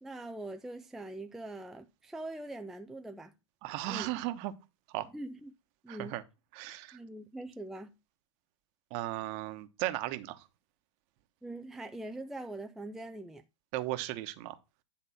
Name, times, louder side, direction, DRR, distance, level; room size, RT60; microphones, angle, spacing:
voice 1, 0.0-3.3 3.9-4.1 5.1-5.5 5.8-6.2 6.9-8.0 11.4-13.4, right 2 dB, ahead, 0.4 m, -42 dB
voice 2, 3.6-4.5 4.9-5.1 5.9-6.2 6.5-7.0 8.9-10.4 13.7-14.6, right 15 dB, 40° right, 1.1 m, -36 dB
10.5 x 3.6 x 5.8 m
hypercardioid pair, 115°, 17 cm